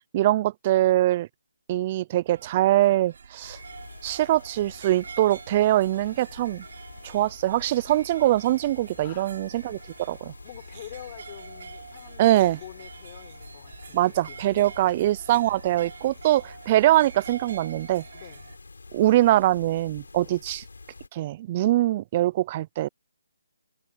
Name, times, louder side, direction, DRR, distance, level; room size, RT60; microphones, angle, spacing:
voice 1, 0.1-1.3 1.7-3.6 4.0-6.6 7.0-10.3 12.2-12.6 13.9-18.0 18.9-20.6 21.1-22.9, right 14 dB, 25° right, 0.3 m, -23 dB
sound 1, 2.3-18.6, right 6 dB, 50° right, 5.6 m, -46 dB
sound 2, 3.4-21.1, left 3 dB, 90° left, 5.7 m, -47 dB
voice 2, 9.0-9.4 10.4-14.9 18.1-18.5 20.1-20.4, left 13 dB, 25° left, 5.6 m, -46 dB
hypercardioid pair, 170°, 0 cm